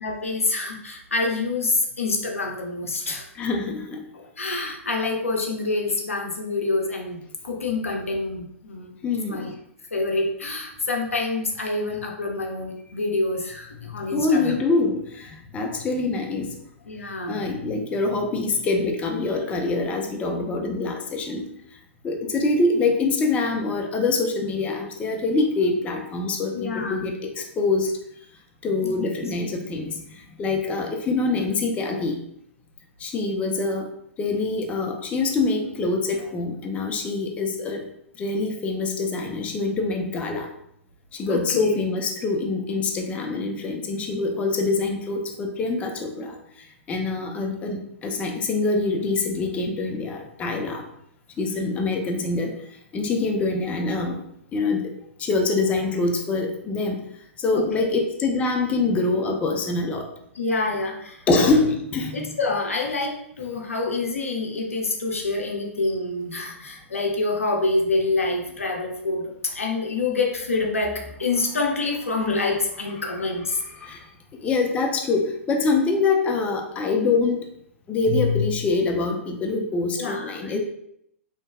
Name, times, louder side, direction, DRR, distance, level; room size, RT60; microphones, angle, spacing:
voice 1, 0.0-3.3 4.1-8.9 9.3-9.5 9.9-14.5 16.9-17.5 26.5-27.0 28.8-29.1 41.2-41.9 57.5-57.8 60.3-61.3 62.1-73.6 80.0-80.6, left 3 dB, 85° left, 1 dB, 0.4 m, -27 dB
voice 2, 3.3-4.0 9.0-9.4 14.1-16.5 17.3-21.5 22.0-27.9 28.6-32.2 33.0-33.9 34.2-37.8 38.2-40.5 41.1-46.4 46.9-50.8 51.4-52.5 52.9-54.2 54.5-54.9 55.2-57.0 57.4-60.1 61.3-62.2 73.8-74.1 74.3-77.5 77.9-80.6, left 3 dB, 20° left, 2 dB, 0.3 m, -25 dB
2.7 x 2.2 x 2.2 m, 0.72 s
figure-of-eight pair, 110°, 7 cm